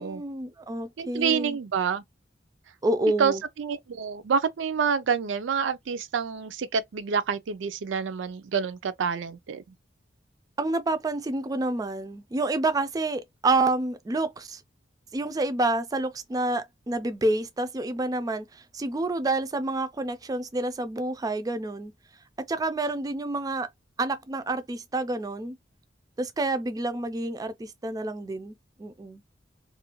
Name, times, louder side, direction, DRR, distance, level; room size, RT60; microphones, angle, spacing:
voice 1, 0.0-1.6 2.8-3.4 10.6-14.6 15.1-21.9 22.4-23.7 24.0-25.6 26.2-29.2, right 2 dB, 20° right, 0.3 m, -28 dB
voice 2, 1.0-2.0 3.2-9.6, right 6 dB, 85° right, 0.4 m, -28 dB
2.5 x 2.2 x 2.8 m
head